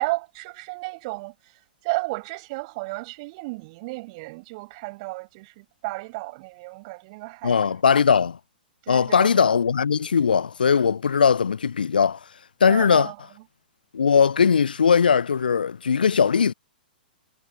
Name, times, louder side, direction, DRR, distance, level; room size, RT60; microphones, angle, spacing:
voice 1, 0.0-7.7 8.8-9.4 12.7-13.2, right 25 dB, 40° right, 5.7 m, -33 dB
voice 2, 7.4-8.4 8.9-12.2 12.6-13.1 13.9-16.5, left 6 dB, 65° left, 0.9 m, -19 dB
figure-of-eight pair, 110°, 5 cm